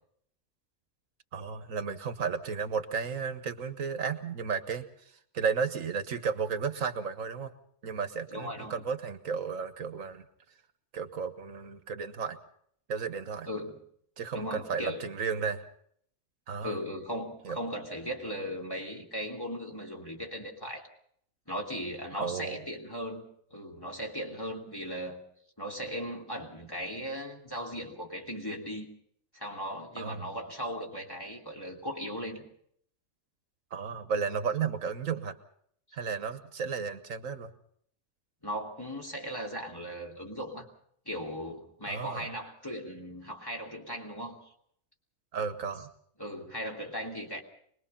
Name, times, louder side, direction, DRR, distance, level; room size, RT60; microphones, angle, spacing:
voice 1, 1.3-7.5 7.8-10.2 10.9-12.4 12.9-13.5 14.2-15.7 16.5-16.8 17.4-17.6 22.2-22.6 30.0-30.2 33.7-35.4 35.9-37.5 41.9-42.3 45.3-45.9, right 6 dB, 80° right, 10 dB, 1.6 m, -33 dB
voice 2, 8.3-8.8 13.5-13.8 14.3-15.0 16.6-20.9 21.5-23.2 23.5-25.2 25.6-28.9 29.3-32.4 38.4-40.7 41.0-44.5 46.2-47.4, equal, 15° left, 0 dB, 3.1 m, -37 dB
24.5 x 21.0 x 5.6 m, 0.66 s
omnidirectional pair, 1.4 m